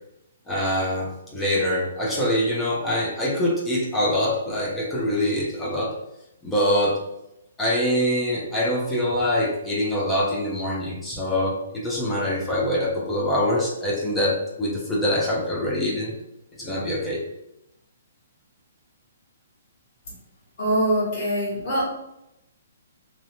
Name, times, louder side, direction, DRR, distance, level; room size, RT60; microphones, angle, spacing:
voice 1, 0.5-5.9 6.4-7.0 7.6-16.1 16.5-17.2, left 1 dB, 5° left, -4 dB, 0.5 m, -24 dB
voice 2, 20.6-21.8, equal, 30° left, -7 dB, 1.2 m, -23 dB
2.7 x 2.1 x 2.8 m, 0.84 s
hypercardioid pair, 170°, 0 cm